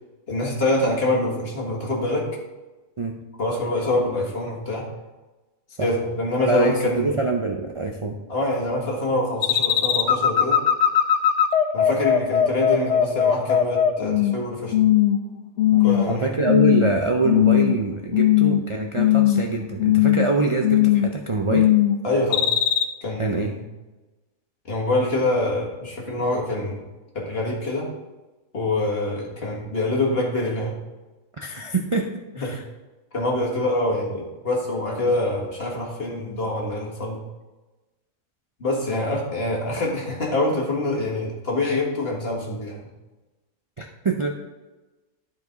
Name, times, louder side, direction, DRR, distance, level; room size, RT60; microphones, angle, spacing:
voice 1, 0.3-2.4 3.4-4.9 5.8-7.1 8.3-10.6 11.7-14.7 15.8-16.3 22.0-22.5 23.0-23.6 24.7-26.8 27.1-27.9 28.5-30.8 32.4-32.5 33.1-37.2 38.6-42.9, left 2 dB, 50° left, -2 dB, 2.0 m, -25 dB
voice 2, 6.5-8.2 15.7-21.7 23.2-23.5 31.4-32.1 32.4-32.6 43.8-44.4, right 3 dB, 35° right, 1 dB, 0.5 m, -25 dB
sound 1, 9.4-14.4 14.7-15.2 15.6-16.1 16.5-16.9 17.3-17.8 18.1-18.7 19.0-19.5 19.8-20.3 20.6-21.1 21.5-22.0 22.3-22.8, left 11 dB, 70° left, 0.9 m, -18 dB
12.0 x 5.2 x 3.9 m, 1.1 s
omnidirectional pair, 1.3 m